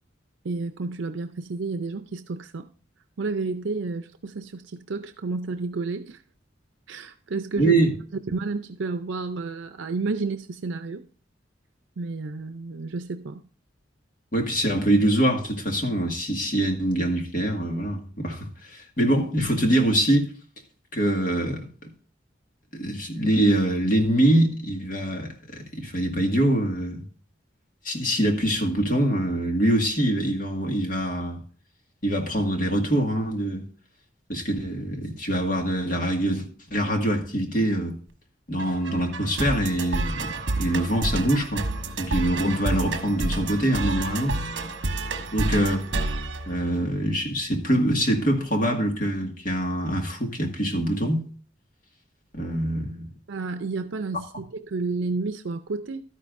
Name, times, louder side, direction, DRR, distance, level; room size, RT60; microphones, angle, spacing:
voice 1, 0.4-2.7 3.2-6.2 6.9-7.7 8.3-11.1 12.0-13.4 53.3-56.0, right 3 dB, 85° right, 0.6 m, -31 dB
voice 2, 7.6-7.9 14.3-20.3 20.9-21.7 22.7-27.0 27.8-31.4 32.0-33.6 34.3-38.0 38.5-41.7 42.0-44.4 45.3-45.9 46.5-51.3 52.3-53.1, right 1 dB, 45° left, 1.9 m, -24 dB
sound 1, 38.6-47.2, right 2 dB, 65° right, 1.2 m, -30 dB
12.5 x 10.0 x 2.6 m
head